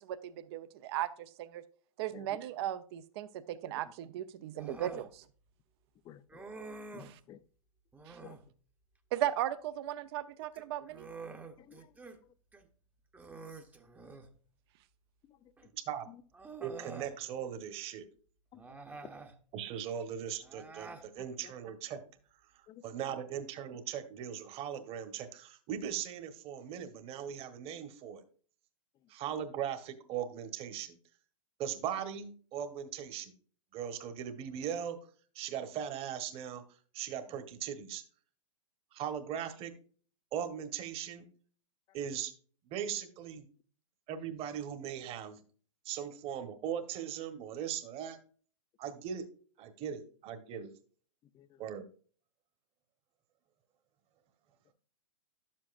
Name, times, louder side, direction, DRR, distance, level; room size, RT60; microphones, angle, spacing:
voice 1, 0.0-1.6 2.0-5.2 7.0-7.2 8.1-8.2 9.1-11.1, right 12 dB, 50° right, 0.7 m, -37 dB
Human voice, 4.6-5.1 6.3-7.2 7.9-8.5 10.4-12.2 12.5-12.6 13.1-14.4 15.6-15.7 16.3-17.1 18.5-19.4 20.4-21.1, right 4 dB, 10° right, 0.9 m, -47 dB
voice 2, 6.0-6.4 6.9-7.4 8.2-8.4 11.6-11.9 15.3-15.4 16.1-16.2 18.5-19.1 21.4-21.5 22.7-22.8 51.3-51.6, left 11 dB, 25° left, 0.6 m, -53 dB
voice 3, 15.7-16.1 16.6-18.0 19.5-22.0 22.8-28.2 29.1-31.0 31.6-33.3 33.7-35.0 35.3-36.6 36.9-38.0 38.9-39.7 40.3-41.3 41.9-42.3 42.7-43.4 44.1-45.4 45.8-48.2 48.8-49.3 49.6-50.7 51.6-51.8, right 9 dB, 35° right, 1.3 m, -39 dB
11.0 x 7.5 x 2.5 m
hypercardioid pair, 110°, 17 cm